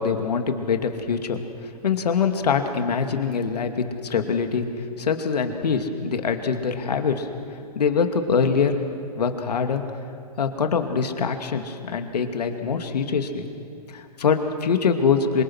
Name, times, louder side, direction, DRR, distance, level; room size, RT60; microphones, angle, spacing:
voice 1, 0.0-4.7 5.0-7.3 7.7-8.7 9.1-9.8 10.4-13.5 13.9-15.4, left 6 dB, 75° left, 6 dB, 2.5 m, -24 dB
26.5 x 25.0 x 6.4 m, 2.5 s
hypercardioid pair, 140°, 21 cm